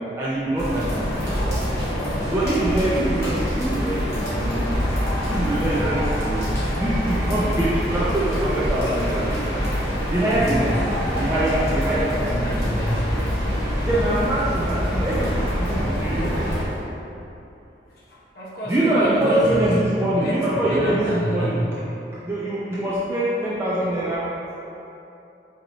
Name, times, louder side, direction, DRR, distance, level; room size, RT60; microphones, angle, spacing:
voice 1, 0.0-1.4 2.3-4.7 5.3-6.5 6.8-9.3 10.1-10.8 11.2-12.7 13.8-16.7 18.7-21.6 22.2-24.3, right 1 dB, 15° right, -9 dB, 0.3 m, -24 dB
sound 1, 0.6-16.6, equal, 15° left, 1.1 m, -25 dB
voice 2, 10.3-10.7 12.3-13.2 18.0-19.7 20.0-21.7, equal, 55° left, -7 dB, 0.6 m, -28 dB
4.2 x 2.7 x 2.7 m, 2.9 s
head